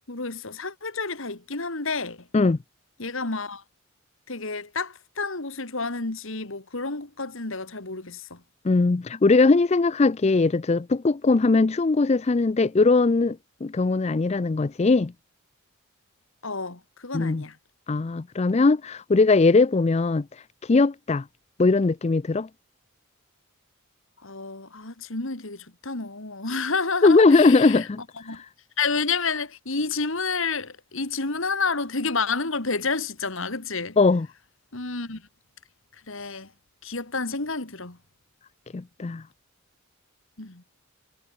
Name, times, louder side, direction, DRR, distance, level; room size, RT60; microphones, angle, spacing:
voice 1, 0.1-2.3 3.0-3.6 4.3-8.4 16.4-17.6 24.2-27.9 28.3-28.4 28.8-34.0 34.7-35.2 36.1-36.5 36.8-38.0 40.4-40.6, left 4 dB, 60° left, 2.1 m, -30 dB
voice 2, 8.6-15.1 17.1-17.4 17.9-20.3 20.7-21.2 21.6-22.5 27.0-28.0 34.0-34.3 38.7-39.2, left 3 dB, 30° left, 0.4 m, -20 dB
head